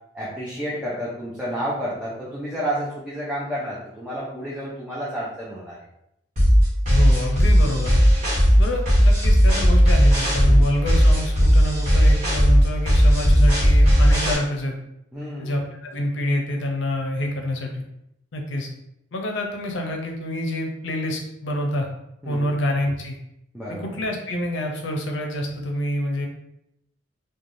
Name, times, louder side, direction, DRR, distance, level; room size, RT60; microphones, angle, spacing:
voice 1, 0.1-5.8 10.4-10.7 15.1-15.6 22.2-22.5 23.5-23.9, equal, 5° right, -8 dB, 0.5 m, -30 dB
sound 1, 6.4-14.4, equal, 40° right, 1.1 m, -16 dB
voice 2, 6.9-8.0 8.6-14.8 15.4-17.8 18.3-18.7 19.1-21.9 22.3-23.2 23.7-26.3, left 1 dB, 75° left, 2 dB, 0.5 m, -27 dB
3.2 x 2.2 x 2.5 m, 0.82 s
head